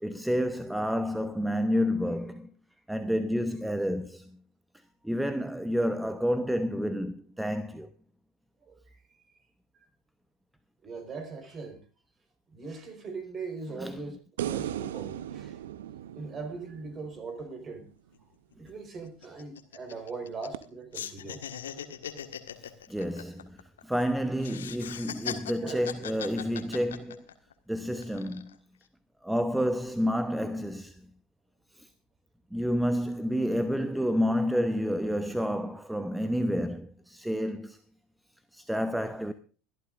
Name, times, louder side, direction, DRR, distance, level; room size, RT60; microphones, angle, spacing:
voice 1, 0.0-2.5 2.9-4.4 5.0-7.9 13.8-13.9 22.6-27.3 27.7-28.6 29.2-31.1 31.7-31.9 32.5-37.8 38.5-39.3, equal, 5° right, 0.9 m, -29 dB
voice 2, 8.6-9.0 9.7-9.9 10.8-11.8 12.5-14.2 14.5-15.6 16.1-17.9 18.6-21.4 21.7-21.8 25.6-25.9, right 4 dB, 30° right, 4.6 m, -40 dB
sound 1, 14.4-17.7 20.5-20.6, right 11 dB, 65° right, 0.8 m, -37 dB
sound 2, 18.1-18.2 18.5-18.7 19.0-20.7 20.9-24.0 24.4-27.5 28.0-28.5, left 9 dB, 70° left, 1.6 m, -40 dB
24.0 x 12.5 x 2.5 m
figure-of-eight pair, 75°, 0 cm